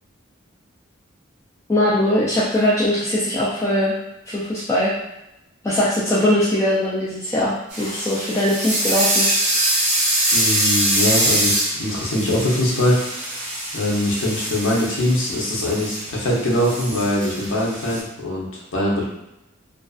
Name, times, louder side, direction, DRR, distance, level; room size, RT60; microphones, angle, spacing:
voice 1, 1.7-3.9 4.3-4.9 5.6-9.3, left 1 dB, 15° left, -8 dB, 0.3 m, -20 dB
sound 1, 7.7-18.0, right 1 dB, 40° right, 0.8 m, -23 dB
voice 2, 10.3-19.0, left 1 dB, 70° left, -4 dB, 0.7 m, -22 dB
2.4 x 2.3 x 2.3 m, 0.90 s
head